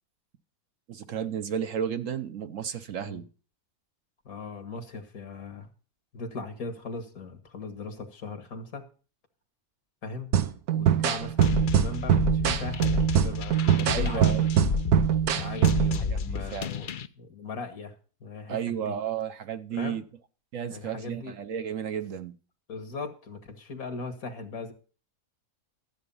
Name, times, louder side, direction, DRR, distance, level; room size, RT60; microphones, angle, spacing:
voice 1, 0.9-3.3 13.9-14.4 16.1-16.7 18.5-20.0 20.5-22.3, right 8 dB, 65° right, 1.2 m, -33 dB
voice 2, 4.3-5.7 6.1-8.9 10.0-10.3 10.7-14.5 15.3-16.9 17.2-18.0 18.2-18.9 19.7-20.0 20.7-21.3 22.7-24.7, left 3 dB, 75° left, 2.1 m, -38 dB
sound 1, 10.3-16.0, right 10 dB, 85° right, 1.3 m, -23 dB
sound 2, 11.4-17.1, left 6 dB, 55° left, 0.5 m, -31 dB
13.0 x 8.0 x 5.5 m
omnidirectional pair, 1.5 m